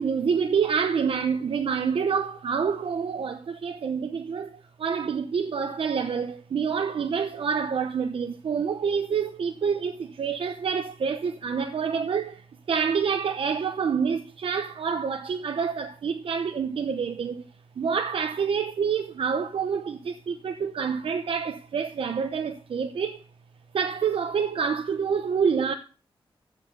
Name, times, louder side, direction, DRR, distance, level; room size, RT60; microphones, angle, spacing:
voice 1, 0.0-17.5 17.8-23.2 23.7-25.7, right 6 dB, 70° right, 0.8 m, -27 dB
15.0 x 5.1 x 6.4 m
wide cardioid pair, 130°, 10 cm